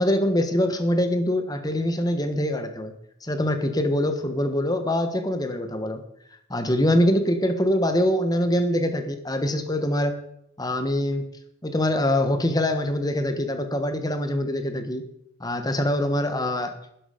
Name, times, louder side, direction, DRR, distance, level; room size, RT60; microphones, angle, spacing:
voice 1, 0.0-2.9 3.2-6.0 6.5-10.1 10.6-11.3 11.6-15.1 15.4-16.8, left 1 dB, 20° left, 8 dB, 1.3 m, -24 dB
12.0 x 11.0 x 5.2 m, 0.74 s
head